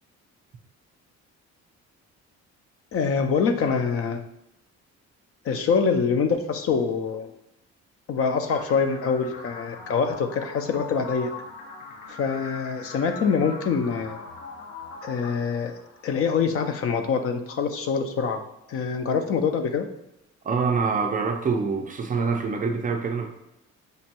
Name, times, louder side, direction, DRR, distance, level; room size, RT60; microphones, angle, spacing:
voice 1, 2.9-4.2 5.4-7.3 8.1-11.3 12.1-14.2 15.0-15.7 16.0-18.4 18.7-19.8, left 5 dB, 50° left, 8 dB, 0.4 m, -25 dB
sound 1, 8.5-16.5, left 3 dB, 85° left, 0.8 m, -41 dB
voice 2, 20.4-23.3, right 5 dB, 30° right, 3 dB, 0.3 m, -25 dB
5.2 x 2.2 x 2.9 m, 0.88 s
cardioid pair, 125°, 29 cm